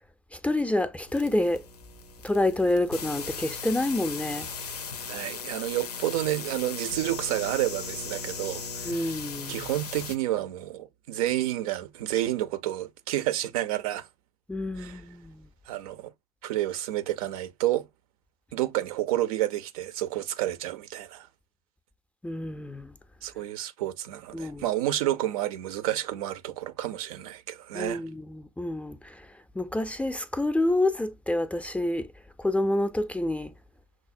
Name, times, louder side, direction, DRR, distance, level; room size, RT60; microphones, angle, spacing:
voice 1, 0.3-1.6 2.2-4.5 8.8-9.7 14.5-15.5 22.2-22.9 24.3-24.6 27.7-29.3 29.6-32.1 32.4-33.5, left 1 dB, 5° left, 0.4 m, -28 dB
sound 1, 1.1-10.2, left 5 dB, 90° left, 0.5 m, -38 dB
voice 2, 5.1-9.1 9.5-14.1 14.8-15.0 15.7-16.1 16.4-17.9 18.5-21.3 23.2-28.0, right 14 dB, 70° right, 0.4 m, -30 dB
5.9 x 2.0 x 2.5 m
hypercardioid pair, 75°, 19 cm